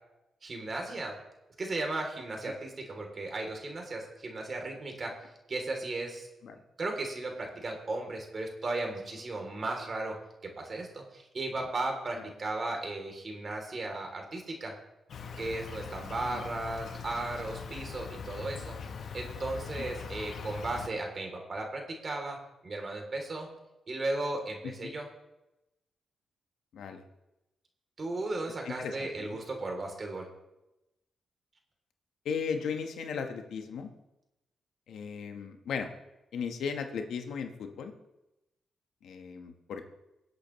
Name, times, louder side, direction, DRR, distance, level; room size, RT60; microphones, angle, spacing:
voice 1, 0.4-1.2 1.6-5.1 5.5-6.3 6.8-10.2 10.4-14.7 15.4-18.8 19.1-22.4 22.6-23.5 23.9-25.1 28.0-30.3, right 2 dB, 40° right, 2 dB, 3.0 m, -35 dB
Insect, 15.1-20.9, left 6 dB, 65° left, 0.9 m, -41 dB
voice 2, 28.6-29.4 32.2-33.9 34.9-35.9 36.3-37.9 39.0-39.8, left 6 dB, 80° left, 6 dB, 1.2 m, -36 dB
24.5 x 8.2 x 3.1 m, 0.94 s
cardioid pair, 90°, 0 cm